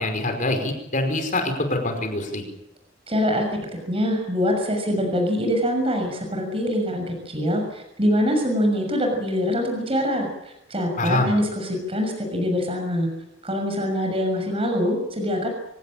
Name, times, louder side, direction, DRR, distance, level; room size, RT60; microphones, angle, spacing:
voice 1, 0.0-2.4 11.0-11.3, left 2 dB, 45° left, 5 dB, 5.0 m, -25 dB
voice 2, 3.1-3.4 3.8-13.1 13.4-15.5, equal, 30° right, 3 dB, 6.5 m, -24 dB
25.0 x 18.0 x 8.9 m, 0.85 s
head